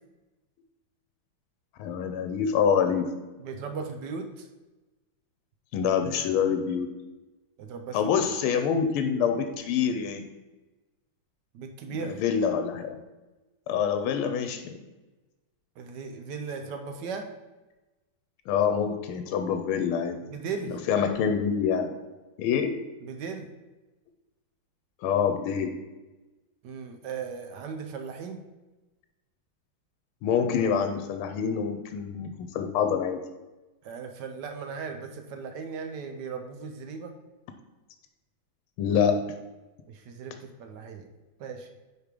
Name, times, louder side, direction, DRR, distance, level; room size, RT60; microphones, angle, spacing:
voice 1, 1.8-3.1 5.7-6.9 7.9-10.2 12.0-13.0 13.7-14.8 18.5-20.2 20.7-21.9 22.4-22.8 25.0-25.7 30.2-33.2 38.8-39.2, left 7 dB, 90° left, 7 dB, 1.5 m, -26 dB
voice 2, 3.4-4.5 7.6-8.1 11.5-12.2 15.8-17.3 20.3-20.8 23.0-23.5 26.6-28.4 33.8-37.1 39.9-41.1 41.4-41.7, right 5 dB, 70° right, 5 dB, 1.1 m, -37 dB
5.1 x 4.7 x 4.8 m, 1.1 s
omnidirectional pair, 2.3 m